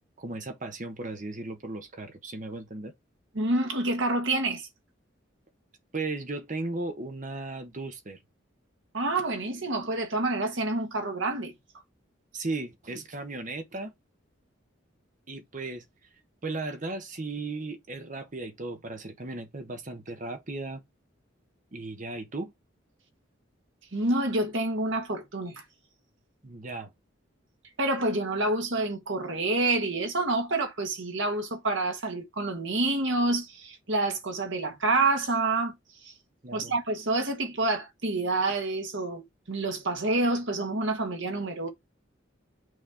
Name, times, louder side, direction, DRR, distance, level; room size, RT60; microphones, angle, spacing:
voice 1, 0.2-2.9 5.9-8.2 12.3-13.9 15.3-15.8 16.4-20.8 21.7-22.5 26.4-26.9 36.4-36.7, right 2 dB, 40° right, 1.1 m, -36 dB
voice 2, 3.3-4.7 8.9-11.5 23.9-25.6 27.8-35.7 36.0-36.1 36.5-41.7, right 2 dB, 70° right, 1.6 m, -28 dB
6.3 x 4.3 x 3.5 m
head